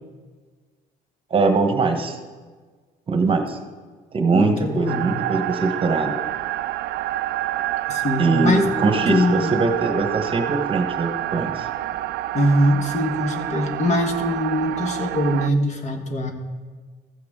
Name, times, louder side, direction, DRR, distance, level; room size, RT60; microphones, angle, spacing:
voice 1, 1.3-2.2 3.1-3.6 4.1-6.2 8.2-11.7, right 3 dB, 30° right, 5 dB, 1.1 m, -22 dB
voice 2, 4.3-5.2 7.9-8.7 9.1-9.5 12.3-16.3, equal, 40° left, 5 dB, 1.4 m, -22 dB
sound 1, 4.9-15.5, right 14 dB, 75° right, 0.4 m, -28 dB
14.5 x 7.7 x 3.6 m, 1.5 s
cardioid pair, 110°, 17 cm